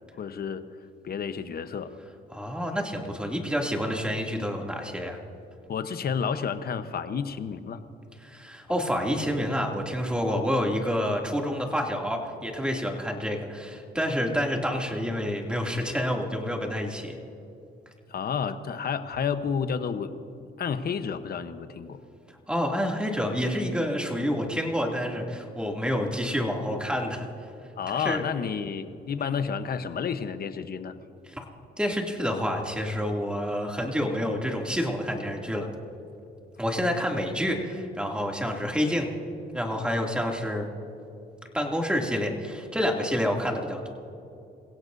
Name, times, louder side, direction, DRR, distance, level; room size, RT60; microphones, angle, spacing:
voice 1, 0.2-0.6 1.0-1.9 5.7-7.8 18.1-20.1 20.6-22.0 27.8-30.9, left 6 dB, 50° left, 10 dB, 1.0 m, -30 dB
voice 2, 2.3-5.2 8.2-17.2 22.5-27.5 27.9-28.2 31.2-31.4 31.8-35.7 36.6-39.1 39.5-40.6 41.5-43.9, equal, 5° right, 0 dB, 2.6 m, -28 dB
28.5 x 16.5 x 2.7 m, 2.7 s
cardioid pair, 90°, 20 cm